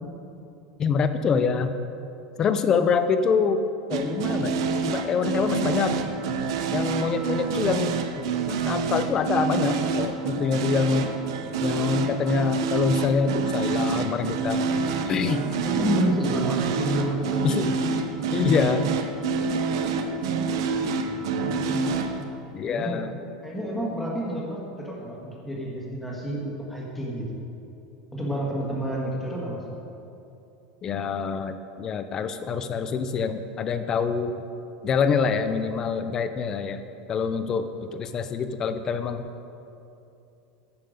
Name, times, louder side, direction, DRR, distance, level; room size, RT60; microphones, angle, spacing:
voice 1, 0.8-1.7 2.4-4.6 4.9-6.0 6.7-8.0 8.5-11.1 11.6-14.6 15.1-15.5 17.4-17.7 18.3-18.9 22.5-23.1 30.8-34.4 34.8-36.8 37.1-39.3, left 5 dB, 20° left, 10 dB, 0.4 m, -25 dB
sound 1, 3.9-22.2, right 5 dB, 70° right, 0.8 m, -27 dB
voice 2, 15.6-17.7 20.7-22.2 22.6-23.0 23.4-27.2 28.1-29.6, equal, 5° left, -4 dB, 1.6 m, -30 dB
14.5 x 5.8 x 5.1 m, 2.8 s
supercardioid pair, 175°, 3 cm